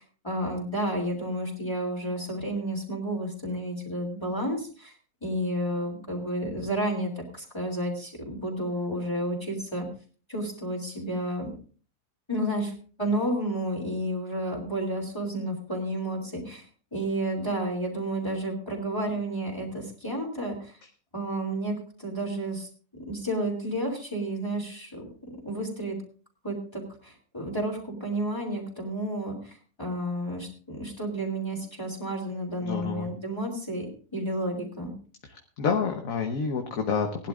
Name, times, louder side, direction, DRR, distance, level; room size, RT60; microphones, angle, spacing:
voice 1, 0.0-4.9 5.2-9.9 10.3-11.5 12.3-12.7 13.0-16.6 16.9-20.8 21.1-22.7 23.1-25.1 25.4-26.0 26.4-34.9, right 1 dB, 15° left, -2 dB, 3.1 m, -31 dB
voice 2, 32.6-33.1 35.3-37.3, left 5 dB, 60° left, 4 dB, 1.5 m, -29 dB
19.5 x 12.0 x 2.5 m, 0.40 s
omnidirectional pair, 1.7 m